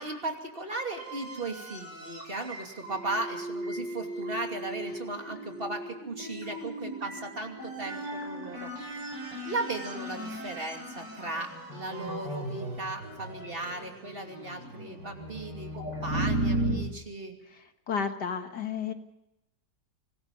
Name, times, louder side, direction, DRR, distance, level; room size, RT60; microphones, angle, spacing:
voice 1, 0.0-9.0 9.4-17.4, right 2 dB, 30° right, 3 dB, 3.0 m, -37 dB
sound 1, 1.0-16.7, right 1 dB, 90° right, 7.6 m, -36 dB
voice 2, 17.9-18.9, left 6 dB, 70° left, 6 dB, 2.1 m, -31 dB
25.0 x 20.0 x 5.3 m, 0.89 s
omnidirectional pair, 1.9 m